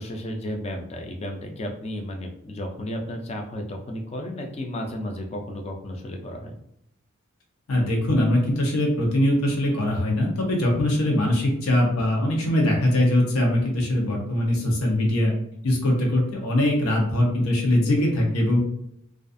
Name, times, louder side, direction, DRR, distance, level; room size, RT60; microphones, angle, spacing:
voice 1, 0.0-6.6, left 1 dB, 30° left, 3 dB, 0.4 m, -33 dB
voice 2, 7.7-15.3 15.6-18.6, left 1 dB, 85° left, -1 dB, 0.7 m, -22 dB
2.4 x 2.3 x 2.5 m, 0.76 s
head